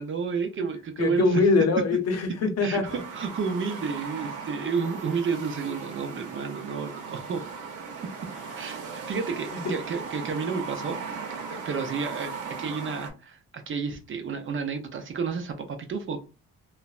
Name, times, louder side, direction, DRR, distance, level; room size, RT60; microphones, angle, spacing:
voice 1, 0.0-1.4 2.6-7.4 8.6-11.0 11.5-12.3 12.6-16.2, right 5 dB, 40° right, 0.6 m, -31 dB
voice 2, 1.0-3.0 9.6-9.7, left 3 dB, 55° left, 0.7 m, -23 dB
sound 1, 2.8-13.1, right 5 dB, 85° right, 0.7 m, -38 dB
3.2 x 2.0 x 2.4 m
cardioid pair, 90°, 30 cm